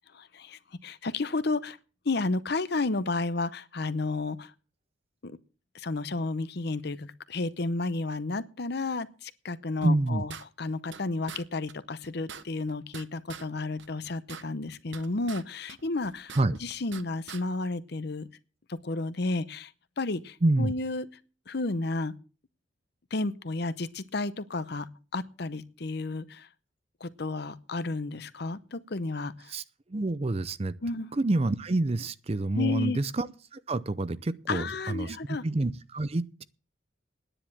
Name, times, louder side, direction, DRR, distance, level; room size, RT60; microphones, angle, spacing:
voice 1, 0.1-1.8 2.0-4.5 5.2-5.4 5.7-18.3 18.7-19.7 20.0-21.1 21.5-22.1 23.1-24.9 25.1-26.5 27.0-29.5 30.8-31.1 32.5-33.0 34.5-35.4, left 3 dB, 55° left, 0.8 m, -32 dB
voice 2, 9.8-10.2 16.4-16.6 20.4-20.7 29.5-29.6 29.9-30.8 31.1-36.4, right 2 dB, 30° right, 0.5 m, -28 dB
sound 1, 9.8-11.0 11.3-11.4 11.7-11.8 12.0-13.5 13.8-15.4 15.7-17.0 17.3-17.4, right 7 dB, 65° right, 0.9 m, -44 dB
10.0 x 10.0 x 7.3 m
head